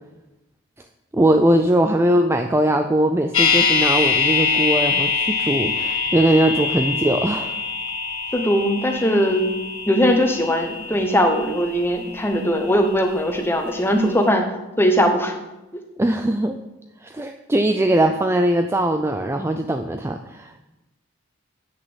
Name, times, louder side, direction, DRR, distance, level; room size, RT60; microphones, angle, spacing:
voice 1, 1.1-7.5 16.0-16.6 17.0-20.6, right 1 dB, 10° right, 6 dB, 0.3 m, -20 dB
sound 1, 3.3-13.4 13.7-13.8, left 5 dB, 75° left, 1.7 m, -24 dB
voice 2, 8.3-9.5 9.9-14.5 14.8-15.3, equal, 10° left, 5 dB, 1.0 m, -20 dB
8.3 x 6.4 x 7.1 m, 0.99 s
head